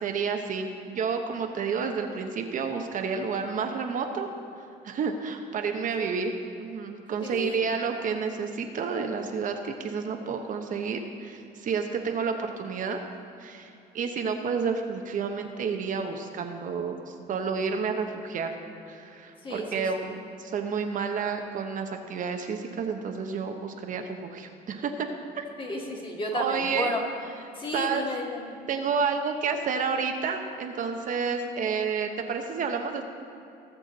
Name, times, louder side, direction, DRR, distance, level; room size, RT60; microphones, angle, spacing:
voice 1, 0.0-4.3 4.8-6.3 6.6-13.0 13.4-18.5 18.9-25.1 25.4-25.5 26.3-26.9 27.7-28.1 28.7-33.0, right 5 dB, 50° right, 4 dB, 0.9 m, -30 dB
voice 2, 7.2-7.7 19.4-19.9 25.6-27.0 27.6-28.6, left 1 dB, 30° left, -1 dB, 2.0 m, -33 dB
18.0 x 7.1 x 4.0 m, 2.6 s
cardioid pair, 110°, 17 cm